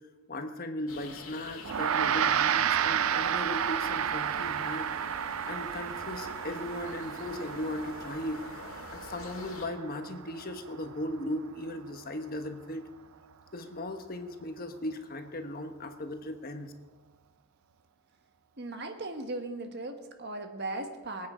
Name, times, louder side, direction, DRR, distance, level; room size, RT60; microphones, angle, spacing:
voice 1, 0.3-4.9 5.4-8.4 8.9-12.9 13.5-16.7, left 1 dB, 45° left, 6 dB, 1.2 m, -37 dB
sound 1, 0.9-9.7, left 3 dB, 80° left, 2.0 m, -46 dB
Gong, 1.6-11.3, right 8 dB, 85° right, 0.5 m, -31 dB
voice 2, 18.6-21.3, right 2 dB, 50° right, 5 dB, 1.5 m, -37 dB
23.5 x 8.7 x 5.0 m, 1.3 s
head